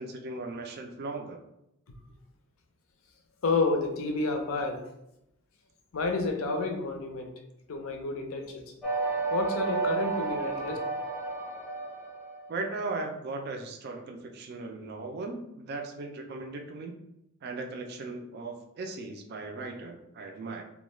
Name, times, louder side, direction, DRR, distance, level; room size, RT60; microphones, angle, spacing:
voice 1, 0.0-1.4 12.5-17.0 17.4-20.6, right 3 dB, 45° right, 4 dB, 0.3 m, -37 dB
voice 2, 3.4-4.8 5.9-7.3 7.7-8.6 9.3-10.8, left 3 dB, 65° left, 4 dB, 0.5 m, -30 dB
sound 1, 8.8-12.5, right 4 dB, 5° left, 0.7 m, -31 dB
2.3 x 2.2 x 3.0 m, 0.83 s
head